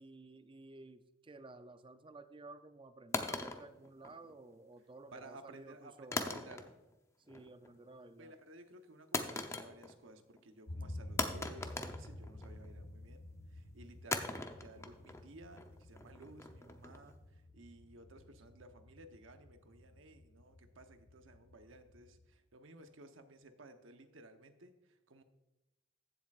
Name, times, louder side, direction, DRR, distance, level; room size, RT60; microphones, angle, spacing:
voice 1, 0.0-6.2 7.3-8.3, right 2 dB, 25° right, 10 dB, 0.5 m, -54 dB
sound 1, 3.1-4.5 6.1-7.0 7.3-7.7 9.1-10.1 10.4-10.5 11.2-12.7 14.1-17.1, left 2 dB, 15° left, 0.7 m, -40 dB
voice 2, 5.1-6.7 8.2-25.2, right 2 dB, 70° right, 7 dB, 0.9 m, -56 dB
sound 2, 10.7-22.2, left 1 dB, 75° left, 1.5 m, -51 dB
15.0 x 7.5 x 2.4 m, 0.98 s
head